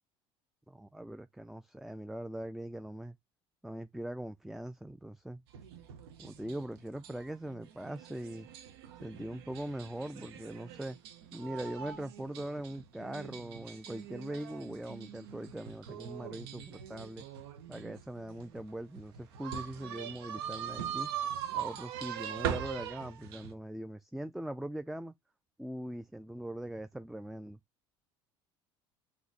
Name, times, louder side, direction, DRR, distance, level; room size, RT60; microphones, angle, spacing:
voice 1, 0.7-3.2 3.6-5.4 6.2-8.5 9.0-11.0 11.3-17.3 17.7-21.1 21.5-25.1 25.6-27.6, right 1 dB, ahead, 0.3 m, -41 dB
sound 1, 5.5-23.5, right 9 dB, 85° right, 0.8 m, -42 dB
4.0 x 2.9 x 4.6 m
hypercardioid pair, 80°, 13 cm